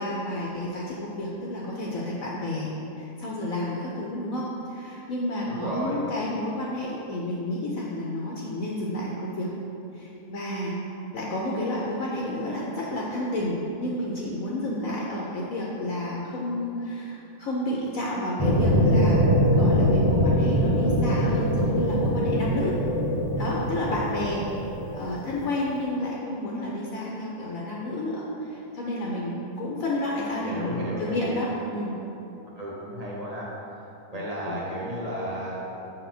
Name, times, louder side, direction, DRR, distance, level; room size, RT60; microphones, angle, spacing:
voice 1, 0.0-9.5 9.9-10.8 11.1-22.8 23.4-24.5 24.9-32.0 34.5-34.6, left 1 dB, 65° left, -4 dB, 1.0 m, -30 dB
voice 2, 5.4-6.0 30.4-31.3 32.6-33.5 34.1-35.8, equal, 30° right, -5 dB, 0.8 m, -33 dB
sound 1, 18.4-25.3 25.6-25.7, equal, 10° right, 1.1 m, -23 dB
6.3 x 4.1 x 4.2 m, 2.9 s
omnidirectional pair, 1.8 m